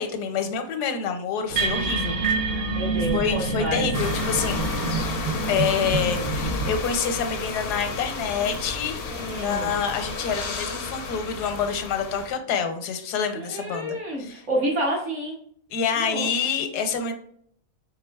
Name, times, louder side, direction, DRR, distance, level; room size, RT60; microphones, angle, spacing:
voice 1, 0.0-2.2 3.1-4.7 5.5-14.4 15.7-17.1, left 6 dB, 85° left, 7 dB, 1.2 m, -27 dB
sound 1, 1.5-6.7, right 3 dB, 70° right, 0.5 m, -27 dB
voice 2, 2.7-3.9 9.1-9.8 13.3-15.4 16.0-16.3, right 1 dB, 50° right, -1 dB, 1.2 m, -29 dB
sound 2, 3.9-12.3, left 3 dB, 65° left, 0.5 m, -32 dB
4.3 x 3.7 x 2.2 m, 0.64 s
omnidirectional pair, 1.7 m